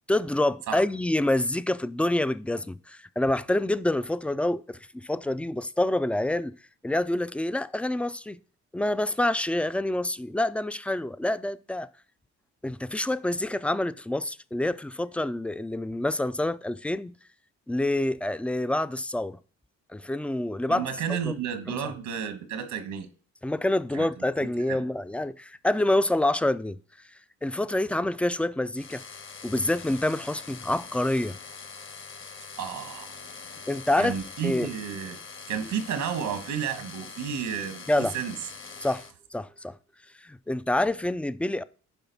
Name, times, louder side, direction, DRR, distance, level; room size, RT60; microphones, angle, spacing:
voice 1, 0.1-6.5 6.8-8.4 8.7-11.9 12.6-17.1 17.7-19.4 19.9-21.3 21.7-21.8 23.4-26.8 27.4-29.0 29.4-31.4 33.7-34.1 34.4-34.7 37.9-38.1 38.8-39.1 39.3-39.8 40.2-41.6, left 1 dB, 5° left, 0.3 m, -27 dB
voice 2, 20.7-23.1 23.9-24.1 24.4-24.8 32.6-33.1 34.0-35.2 35.5-38.3, right 8 dB, 85° right, 1.4 m, -32 dB
sound 1, 28.7-39.1, left 5 dB, 40° left, 1.1 m, -43 dB
11.0 x 5.1 x 4.0 m
cardioid pair, 90°, 30 cm